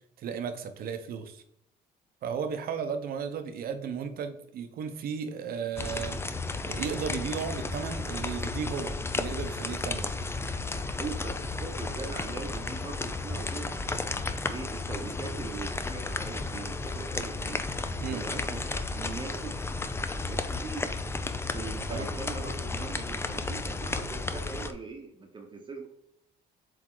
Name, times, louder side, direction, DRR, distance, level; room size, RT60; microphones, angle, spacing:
voice 1, 0.2-1.4 2.2-6.2 6.6-10.1 18.0-18.2 21.9-22.1, right 6 dB, 60° right, 8 dB, 1.0 m, -34 dB
sound 1, 5.8-24.7, left 3 dB, 15° left, 0.5 m, -33 dB
voice 2, 11.0-13.8 14.5-17.6 18.1-19.6 20.3-20.9 21.5-25.9, right 4 dB, 30° right, 2 dB, 1.0 m, -41 dB
7.7 x 3.6 x 3.9 m, 0.77 s
cardioid pair, 110°, 17 cm